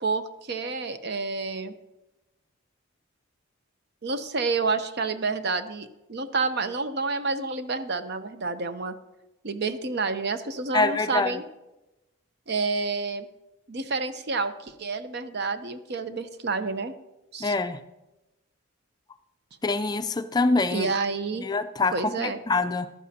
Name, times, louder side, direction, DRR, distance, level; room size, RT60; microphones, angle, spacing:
voice 1, 0.0-1.7 4.0-8.9 9.4-11.4 12.5-13.3 13.7-16.9 17.3-17.5 20.7-21.5 21.9-22.4, right 4 dB, 55° right, 10 dB, 0.7 m, -29 dB
voice 2, 10.7-11.3 17.4-17.8 19.6-20.9 21.4-22.9, left 3 dB, 20° left, 9 dB, 0.4 m, -25 dB
14.5 x 11.0 x 2.8 m, 0.97 s
head